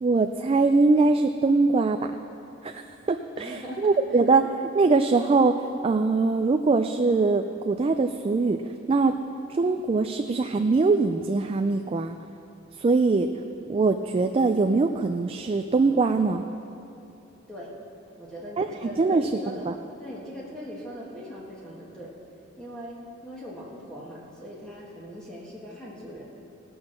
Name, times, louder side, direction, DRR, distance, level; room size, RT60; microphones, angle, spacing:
voice 1, 0.0-2.1 2.6-2.8 3.1-4.4 4.8-8.6 8.9-9.1 9.5-12.2 12.8-13.3 13.7-16.5 18.6-18.7 19.0-19.3 19.7-19.8, right 3 dB, 30° right, 7 dB, 0.3 m, -22 dB
voice 2, 3.3-4.5 17.5-17.7 18.2-19.7 20.0-22.1 22.6-26.2, equal, 5° left, -6 dB, 1.5 m, -40 dB
17.5 x 6.3 x 6.3 m, 2.9 s
head